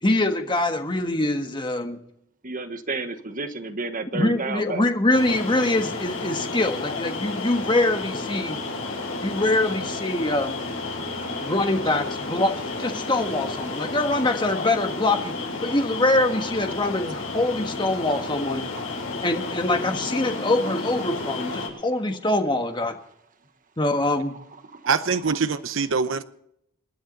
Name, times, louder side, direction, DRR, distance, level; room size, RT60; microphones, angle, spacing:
voice 1, 0.0-2.0 4.1-8.6 9.2-10.6 11.4-15.3 15.6-18.7 19.2-22.9 23.8-24.3, left 2 dB, 20° left, 1.5 m, -24 dB
voice 2, 2.4-4.8 8.5-9.4 10.9-11.5 20.4-20.5 21.3-21.4 24.7-25.4, right 3 dB, 40° right, 1.3 m, -33 dB
sound 1, 5.1-21.7, left 3 dB, 75° left, 7.7 m, -32 dB
voice 3, 24.9-26.2, right 5 dB, 65° right, 0.8 m, -23 dB
28.0 x 10.5 x 4.0 m
head